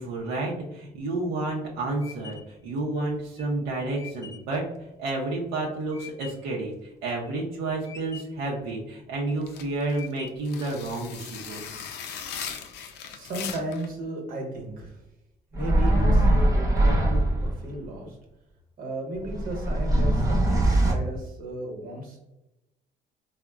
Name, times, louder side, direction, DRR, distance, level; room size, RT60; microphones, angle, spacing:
voice 1, 0.0-4.7 5.0-11.6, right 2 dB, 90° right, -3 dB, 0.5 m, -30 dB
sound 1, 1.1-6.6 7.0-7.6 7.8-8.5 9.0-9.5 9.9-10.6, left 6 dB, 20° left, 0.4 m, -46 dB
sound 2, 9.4-13.9, left 7 dB, 80° left, 0.4 m, -38 dB
voice 2, 13.1-15.0 15.5-18.2 18.8-22.2, right 1 dB, 60° right, 0 dB, 1.0 m, -35 dB
sound 3, 15.5-17.6 19.2-20.9, right 1 dB, 20° right, 0.8 m, -21 dB
3.5 x 2.0 x 2.3 m, 0.92 s
cardioid pair, 110°, 17 cm